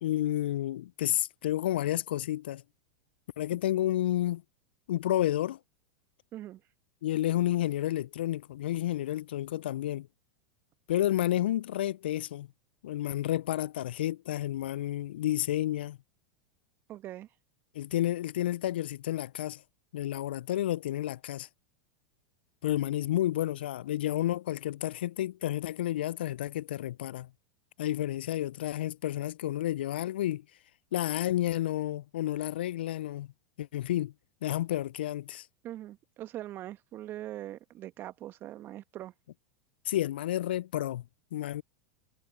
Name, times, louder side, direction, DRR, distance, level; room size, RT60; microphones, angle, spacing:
voice 1, 0.0-2.6 3.4-4.4 4.9-5.6 7.0-10.1 10.9-12.5 12.8-16.0 17.7-19.6 19.9-21.5 22.6-27.3 27.8-30.4 30.9-33.3 33.6-34.1 34.4-35.5 39.9-41.0 41.3-41.6, left 13 dB, 70° left, 0.4 m, -30 dB
voice 2, 16.9-17.3 35.6-39.1, right 13 dB, 40° right, 1.7 m, -42 dB
hypercardioid pair, 90°, 6 cm